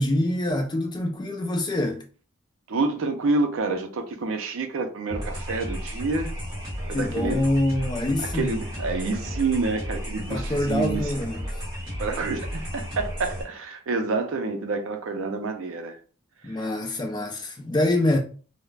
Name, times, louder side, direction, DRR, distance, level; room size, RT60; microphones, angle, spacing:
voice 1, 0.0-2.0 6.9-8.6 10.3-11.5 16.4-18.2, left 1 dB, 20° left, 0.3 m, -25 dB
voice 2, 2.7-6.3 6.9-7.4 8.2-11.0 12.0-16.0 16.6-16.7, right 3 dB, 65° right, 0.4 m, -28 dB
sound 1, 5.1-13.4, equal, 15° right, 1.1 m, -33 dB
2.3 x 2.0 x 3.2 m
head